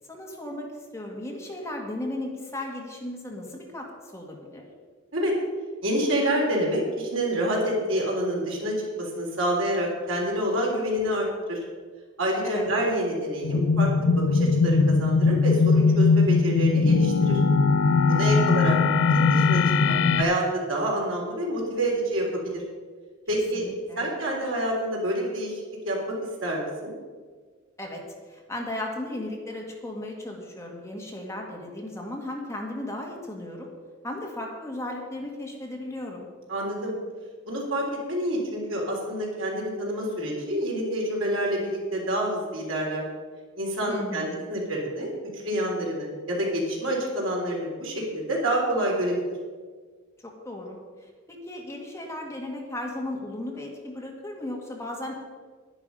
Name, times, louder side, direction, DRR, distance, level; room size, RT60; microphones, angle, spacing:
voice 1, 0.0-3.9 4.1-4.6 12.4-12.6 18.1-18.6 23.5-24.1 27.8-28.0 28.3-33.7 34.0-36.3 43.9-44.4 50.2-55.3, left 1 dB, 15° left, 0 dB, 1.8 m, -36 dB
voice 2, 5.8-11.6 12.2-13.9 14.3-17.4 18.1-18.8 19.1-22.6 23.3-23.6 24.0-26.0 26.4-26.9 36.5-36.9 37.5-43.0 43.6-49.1, right 1 dB, 70° right, -2 dB, 3.6 m, -27 dB
sound 1, 13.4-20.2, left 4 dB, 65° left, 0.5 m, -20 dB
10.5 x 10.5 x 5.5 m, 1.5 s
head